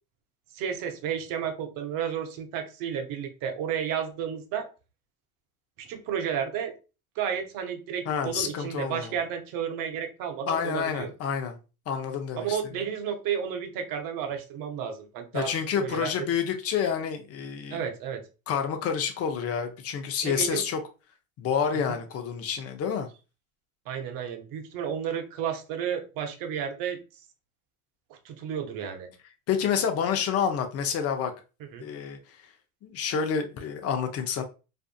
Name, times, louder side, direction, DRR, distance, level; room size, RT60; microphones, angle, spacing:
voice 1, 0.5-4.7 5.8-6.7 7.2-11.1 12.4-15.5 15.8-16.3 17.7-18.2 20.2-20.6 21.9-22.0 23.9-27.0 28.1-29.1 31.7-31.9, right 8 dB, 50° right, 0.7 m, -32 dB
voice 2, 8.1-9.1 10.5-11.6 11.9-12.6 15.3-17.8 18.5-20.8 21.4-23.1 29.5-31.3 31.8-32.2 32.8-34.4, left 7 dB, 35° left, 0.6 m, -28 dB
2.5 x 2.4 x 2.3 m
hypercardioid pair, 90°, 43 cm